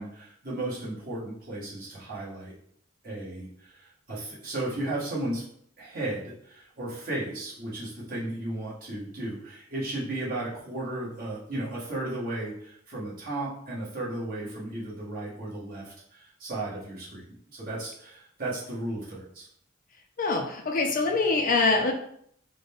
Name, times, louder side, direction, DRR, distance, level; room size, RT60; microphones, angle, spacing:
voice 1, 0.0-2.5 3.0-5.4 5.8-19.5, right 1 dB, 45° right, -7 dB, 1.3 m, -35 dB
voice 2, 20.2-21.9, left 3 dB, 45° left, 4 dB, 0.4 m, -24 dB
3.8 x 2.1 x 3.5 m, 0.66 s
head